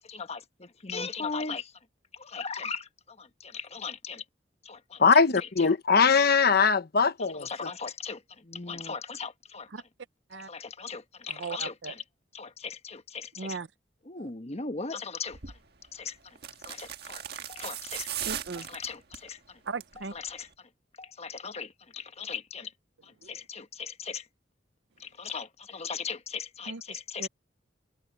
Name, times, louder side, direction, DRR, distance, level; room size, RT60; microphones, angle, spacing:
voice 1, 0.1-1.7 2.1-4.2 4.6-5.0 5.6-5.7 7.4-9.7 10.5-12.0 12.3-13.6 14.1-15.4 15.9-16.2 16.7-17.2 17.5-18.1 18.6-19.4 20.1-20.5 21.0-22.7 23.3-24.2 25.0-27.3, left 5 dB, 35° left, 1.2 m, -38 dB
voice 2, 5.0-7.7, left 5 dB, 60° left, 1.1 m, -21 dB
voice 3, 11.3-11.9 13.4-13.7 14.2-14.3 18.2-18.7 19.7-20.1 26.7-27.3, right 4 dB, 75° right, 0.8 m, -38 dB
sound 1, 15.3-15.6 16.4-19.3 19.7-20.0 20.3-20.4, right 10 dB, 60° right, 1.6 m, -38 dB
head